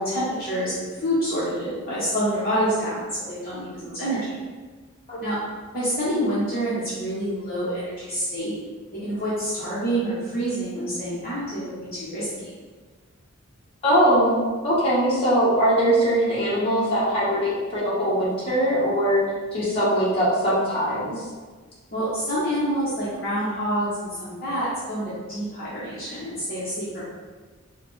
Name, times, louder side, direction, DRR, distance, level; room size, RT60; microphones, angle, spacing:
voice 1, 0.0-4.2 5.2-5.4 5.7-8.5 9.0-12.5 21.9-27.0, equal, 45° left, -10 dB, 1.0 m, -27 dB
voice 2, 13.8-19.2 19.5-21.1, equal, 25° left, -9 dB, 1.3 m, -21 dB
4.8 x 2.3 x 3.2 m, 1.4 s
head